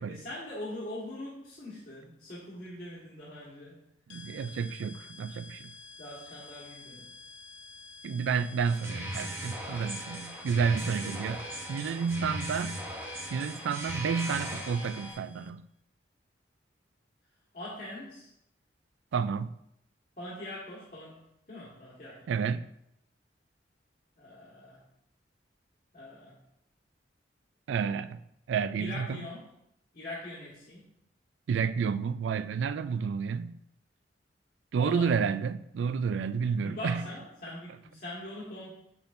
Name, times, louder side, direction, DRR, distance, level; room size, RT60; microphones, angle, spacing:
voice 1, 0.1-3.8 6.0-7.1 10.8-11.3 17.5-18.3 20.2-21.2 21.5-22.3 24.2-24.8 25.9-26.4 28.8-29.5 29.9-30.8 34.8-35.1 36.5-38.7, left 1 dB, 55° left, 1.5 m, -42 dB
sound 1, 4.1-15.5, left 3 dB, 70° left, 0.4 m, -50 dB
voice 2, 4.1-5.7 8.0-11.4 11.7-12.8 13.3-15.6 19.1-19.5 22.3-22.6 27.7-28.2 28.5-29.3 31.5-33.6 34.7-37.1, right 6 dB, 85° right, 0.3 m, -30 dB
sound 2, 8.6-15.1, right 1 dB, 15° right, 1.0 m, -39 dB
7.0 x 6.0 x 2.6 m
head